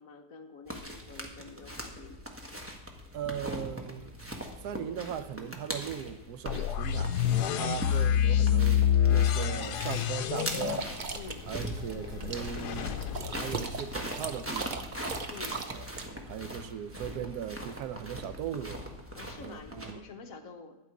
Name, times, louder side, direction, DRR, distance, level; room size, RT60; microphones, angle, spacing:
voice 1, 0.0-2.4 7.6-7.8 11.1-11.4 15.3-15.6 19.1-20.8, left 4 dB, 60° left, 5 dB, 1.3 m, -47 dB
sound 1, 0.7-19.9, equal, 10° right, 1.0 m, -41 dB
voice 2, 3.1-4.1 4.6-7.2 7.5-10.9 11.5-13.0 13.3-14.9 15.7-15.9 16.1-18.9 19.4-20.0, right 9 dB, 75° right, 12 dB, 1.1 m, -39 dB
sound 2, 6.5-14.4, left 9 dB, 80° left, 1.2 m, -28 dB
sound 3, 10.4-16.0, right 4 dB, 50° right, 0.6 m, -39 dB
12.0 x 5.1 x 8.4 m, 0.97 s
omnidirectional pair, 1.8 m